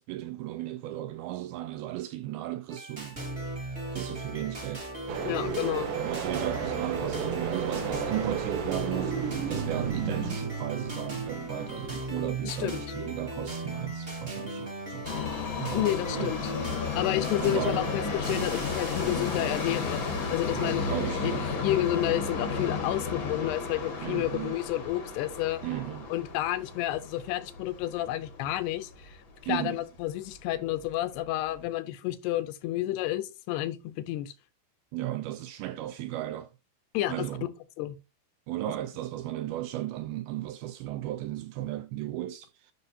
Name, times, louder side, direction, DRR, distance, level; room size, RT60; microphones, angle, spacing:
voice 1, 0.0-3.2 3.9-4.9 5.5-5.6 6.0-15.1 15.6-16.4 17.4-17.8 18.3-18.5 20.5-21.5 24.0-24.6 25.6-26.1 29.5-29.8 34.9-36.5 37.1-37.5 38.5-42.7, right 14 dB, 85° right, 2.2 m, -35 dB
sound 1, 2.7-20.8, right 1 dB, 30° right, 1.2 m, -38 dB
sound 2, 5.1-10.4, right 7 dB, 65° right, 2.5 m, -33 dB
voice 2, 5.2-5.9 12.4-12.8 15.7-16.5 17.0-20.0 20.3-21.3 21.6-25.6 26.1-29.2 29.4-34.3 36.9-37.5 37.8-38.0, left 14 dB, 80° left, 2.7 m, -30 dB
Subway metro underground, 15.0-29.2 29.5-29.6 30.4-30.5 30.8-30.9 31.5-31.6, left 4 dB, 60° left, 1.3 m, -33 dB
10.0 x 5.8 x 2.8 m
omnidirectional pair, 4.7 m